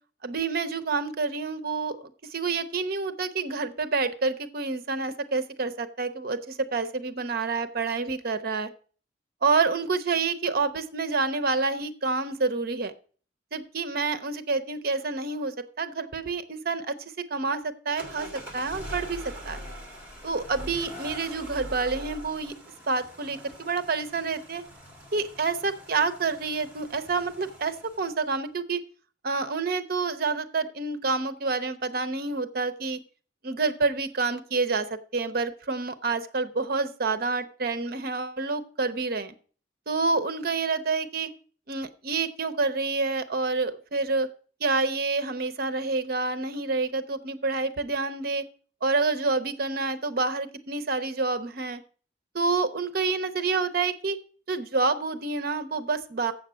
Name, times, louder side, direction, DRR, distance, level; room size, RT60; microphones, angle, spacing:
voice 1, 0.2-8.7 9.4-12.9 13.5-17.0 17.3-19.6 20.2-22.5 22.9-24.6 25.1-28.8 29.2-33.0 33.4-39.3 39.9-41.3 41.7-44.3 44.6-48.4 48.8-51.8 52.3-54.2 54.5-56.3, right 4 dB, 50° right, 11 dB, 0.7 m, -28 dB
sound 1, 18.0-28.2, equal, 10° right, 2.0 m, -43 dB
7.5 x 7.2 x 6.2 m, 0.41 s
head